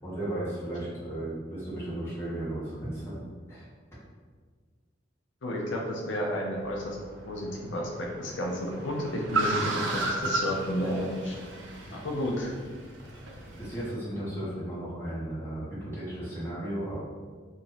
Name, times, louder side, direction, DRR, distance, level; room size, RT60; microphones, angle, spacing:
voice 1, 0.0-3.2 3.5-3.6 11.9-12.0 13.6-17.0, right 1 dB, 15° left, -10 dB, 1.4 m, -35 dB
voice 2, 5.4-7.0 7.3-11.4 12.0-12.5, left 1 dB, 85° left, -1 dB, 0.6 m, -31 dB
Car, 6.5-13.9, right 2 dB, 90° right, 0.6 m, -35 dB
2.9 x 2.7 x 3.9 m, 1.6 s
head